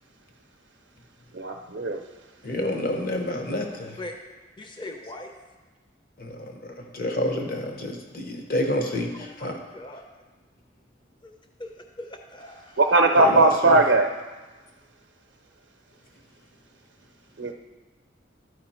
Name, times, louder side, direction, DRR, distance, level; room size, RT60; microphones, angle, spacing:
voice 1, 1.3-2.0 12.8-14.1 17.4-17.5, right 2 dB, 70° right, 2 dB, 0.6 m, -19 dB
voice 2, 2.4-4.0 6.2-9.6 13.2-13.8, left 1 dB, 50° left, 3 dB, 1.0 m, -29 dB
voice 3, 4.6-5.3 9.2-10.0 11.2-11.3 11.6-11.7 12.0-12.8, left 1 dB, 25° left, 4 dB, 0.6 m, -40 dB
12.5 x 4.8 x 4.3 m, 1.3 s
head